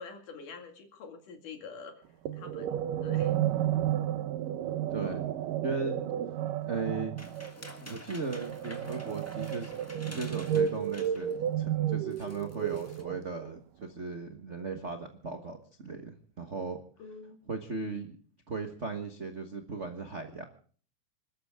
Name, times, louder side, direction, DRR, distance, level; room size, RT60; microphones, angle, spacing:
voice 1, 0.0-1.9 2.3-3.3 5.0-5.2 17.0-17.4, left 5 dB, 75° left, 5 dB, 3.8 m, -46 dB
sound 1, 2.3-13.6, right 10 dB, 90° right, 2.6 m, -32 dB
voice 2, 4.9-5.2 5.6-6.1 6.6-7.1 7.8-9.7 10.1-16.8 17.5-18.2 18.5-20.5, right 4 dB, 65° right, 5 dB, 0.7 m, -37 dB
sound 2, 7.2-11.4 11.8-11.9 12.1-13.0, left 1 dB, 10° left, 1.0 m, -49 dB
27.0 x 13.0 x 3.6 m, 0.43 s
omnidirectional pair, 3.7 m